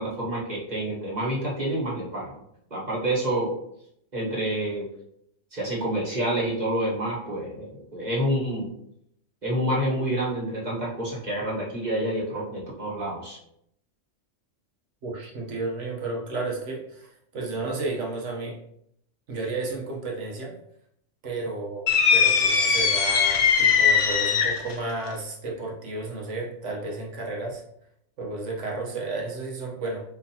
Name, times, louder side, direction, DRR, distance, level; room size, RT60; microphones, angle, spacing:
voice 1, 0.0-2.4 2.7-3.5 4.1-4.9 5.5-8.7 9.4-13.4, right 1 dB, 35° right, -6 dB, 1.4 m, -28 dB
voice 2, 15.0-18.6 19.3-20.6 21.2-27.6 28.2-30.0, right 2 dB, 70° right, -1 dB, 1.3 m, -32 dB
sound 1, 21.9-24.7, left 6 dB, 75° left, 1.0 m, -20 dB
4.6 x 4.0 x 2.8 m, 0.74 s
omnidirectional pair, 1.3 m